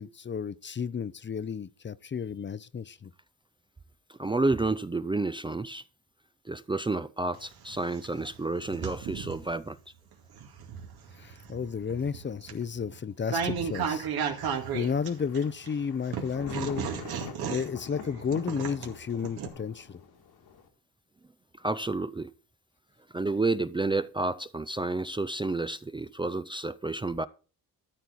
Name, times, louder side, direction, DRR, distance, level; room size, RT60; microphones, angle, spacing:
voice 1, 0.0-3.1 11.2-14.1 14.7-16.9 17.5-20.0, left 6 dB, 30° left, 0.6 m, -32 dB
voice 2, 4.1-5.8 6.5-9.8 21.6-22.3 23.1-27.3, right 2 dB, 15° right, 0.5 m, -30 dB
sound 1, 7.3-9.5 10.1-15.7 16.1-19.5, right 7 dB, 85° right, 2.3 m, -34 dB
Thunder, 14.3-20.7, left 6 dB, 85° left, 2.5 m, -46 dB
13.0 x 4.4 x 8.3 m
cardioid pair, 85°, 37 cm